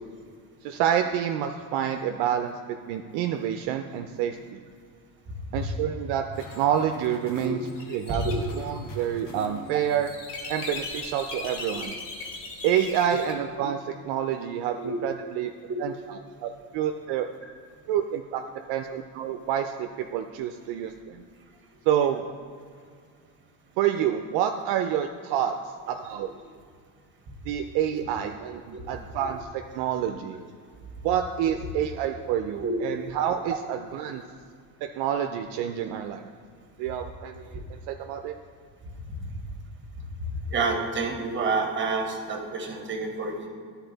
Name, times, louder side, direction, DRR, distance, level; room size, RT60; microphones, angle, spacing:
voice 1, 0.6-4.6 5.5-6.2 6.6-7.6 7.9-8.2 8.5-10.1 10.5-11.9 12.6-13.8 14.0-15.5 15.8-17.3 17.9-18.4 18.7-21.2 21.9-22.3 23.8-25.5 25.9-26.3 27.5-30.4 31.0-34.2 35.0-36.3 36.8-38.3, right 10 dB, 65° right, 6 dB, 0.5 m, -28 dB
sound 1, 6.3-13.3, left 3 dB, 65° left, 1.4 m, -39 dB
voice 2, 40.3-43.5, right 3 dB, 25° right, 3 dB, 1.2 m, -28 dB
11.0 x 4.2 x 3.9 m, 2.1 s
cardioid pair, 120°, 43 cm